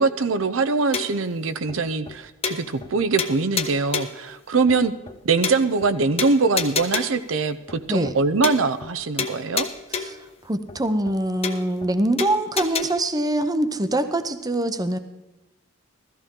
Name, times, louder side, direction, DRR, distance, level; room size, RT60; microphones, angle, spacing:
voice 1, 0.0-4.9 5.2-9.7, right 4 dB, 75° right, 10 dB, 0.7 m, -22 dB
sound 1, 0.9-1.3 1.7-1.8 2.1-2.2 2.4-2.9 3.2-4.2 4.7-4.8 5.1-5.2 5.4-5.9 6.2-7.3 7.7-7.8 8.1-8.2 8.4-8.9 9.2-10.3 10.7-10.8 11.1-11.2 11.4-11.9 12.2-12.8, left 5 dB, 30° left, 1.0 m, -29 dB
voice 2, 10.4-15.0, right 1 dB, 20° right, 10 dB, 0.7 m, -24 dB
16.0 x 14.0 x 3.7 m, 1.0 s
head